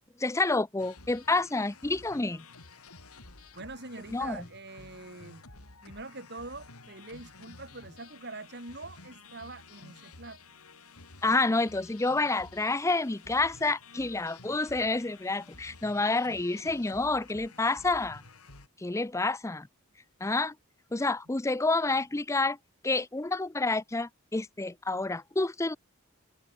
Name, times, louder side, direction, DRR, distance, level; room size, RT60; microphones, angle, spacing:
voice 1, 0.2-2.5 4.1-4.4 11.2-18.2 18.8-19.7 20.2-20.5 20.9-22.6 22.8-25.8, left 3 dB, 15° left, 0.5 m, -28 dB
sound 1, 0.8-18.7, left 3 dB, 85° left, 4.7 m, -52 dB
voice 2, 3.5-5.4 5.8-10.4, right 2 dB, 50° right, 6.9 m, -44 dB
head